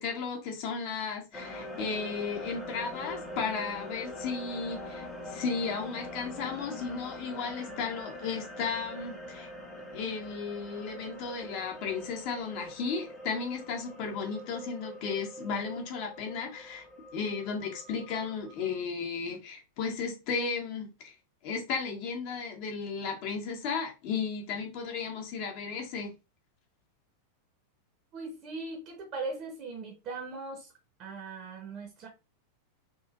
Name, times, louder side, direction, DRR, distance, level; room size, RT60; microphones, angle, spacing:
voice 1, 0.0-9.5 9.9-16.8 17.1-21.1 21.4-26.1, left 5 dB, 45° left, 0.9 m, -34 dB
sound 1, 1.3-18.8, left 1 dB, 10° left, 0.8 m, -43 dB
voice 2, 28.1-30.7 31.0-32.1, right 3 dB, 35° right, 0.7 m, -39 dB
3.0 x 2.5 x 2.4 m
figure-of-eight pair, 90°, 0 cm